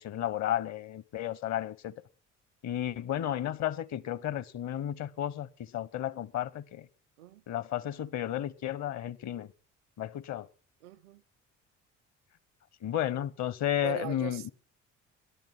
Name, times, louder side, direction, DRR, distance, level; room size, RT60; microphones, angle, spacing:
voice 1, 0.0-1.9 2.6-6.9 7.5-9.5 10.0-10.5 12.8-14.5, left 11 dB, 45° left, 1.0 m, -33 dB
voice 2, 10.8-11.2 13.8-14.5, right 16 dB, 70° right, 0.7 m, -40 dB
18.0 x 11.0 x 5.9 m
figure-of-eight pair, 50°, 38 cm